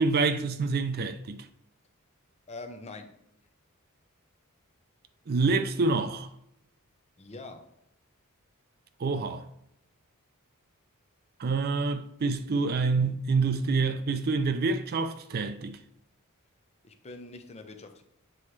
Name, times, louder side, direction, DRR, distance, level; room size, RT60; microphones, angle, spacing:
voice 1, 0.0-1.4 5.3-6.3 9.0-9.4 11.4-15.8, right 4 dB, 45° right, 0.4 m, -27 dB
voice 2, 2.5-3.1 7.2-7.7 16.8-18.0, left 2 dB, 30° left, 0.7 m, -44 dB
7.7 x 4.1 x 3.2 m
head